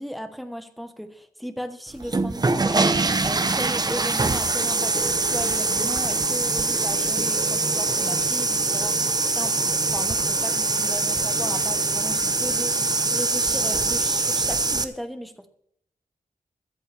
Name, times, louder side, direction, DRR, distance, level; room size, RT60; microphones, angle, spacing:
voice 1, 0.0-2.9 3.2-15.5, equal, ahead, 8 dB, 1.1 m, -36 dB
sound 1, 2.0-14.8, right 3 dB, 30° right, 0.8 m, -23 dB
22.5 x 7.9 x 3.4 m, 0.71 s
wide cardioid pair, 140°, 14 cm